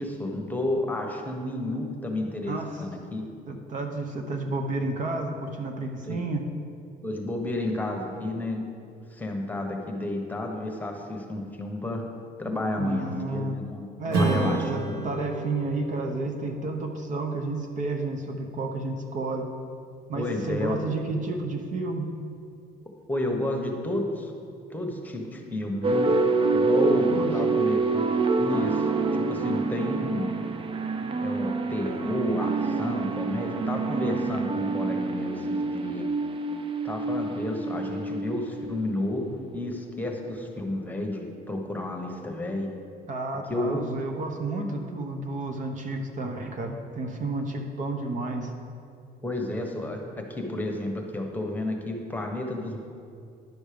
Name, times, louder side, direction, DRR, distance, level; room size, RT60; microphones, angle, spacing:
voice 1, 0.0-3.2 6.0-6.2 7.0-8.6 9.1-12.0 12.4-15.0 20.2-20.8 23.1-24.3 24.7-26.1 26.5-28.0 28.4-30.3 31.2-36.1 36.8-42.7 43.5-43.8 49.2-50.0 50.3-52.8, left 1 dB, 10° left, 2 dB, 1.2 m, -31 dB
voice 2, 2.5-2.8 3.5-6.5 12.8-13.6 14.0-19.5 20.1-22.1 27.1-27.3 43.1-48.5, right 2 dB, 50° right, 4 dB, 0.9 m, -31 dB
Strum, 14.1-19.0, right 2 dB, 80° right, 1.4 m, -32 dB
sound 1, 25.8-39.2, right 3 dB, 30° right, 0.6 m, -27 dB
10.5 x 6.3 x 5.2 m, 2.5 s
cardioid pair, 110°, 17 cm